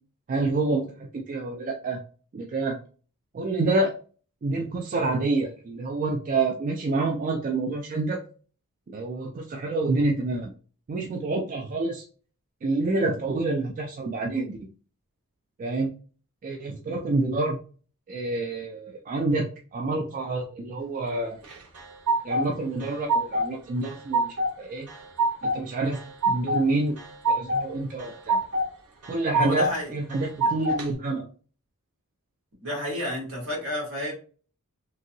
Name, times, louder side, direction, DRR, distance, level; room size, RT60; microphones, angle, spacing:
voice 1, 0.3-2.0 2.3-2.8 3.3-4.0 4.4-8.2 8.9-10.5 10.9-12.0 12.6-14.6 15.6-15.9 16.4-17.6 18.1-21.4 22.2-24.9 25.4-26.0 26.3-27.0 27.3-28.4 29.1-31.2, right 2 dB, 35° right, 3 dB, 0.3 m, -27 dB
sound 1, 21.4-22.4 22.8-23.5 23.8-24.5 24.9-25.6 25.9-26.6 27.0-27.6 28.0-28.7 29.0-29.7 30.1-30.9, right 2 dB, 80° right, 0.9 m, -25 dB
voice 2, 29.3-29.9 30.4-30.5 32.6-34.1, equal, 65° right, 0 dB, 1.5 m, -30 dB
2.9 x 2.7 x 2.6 m, 0.39 s
head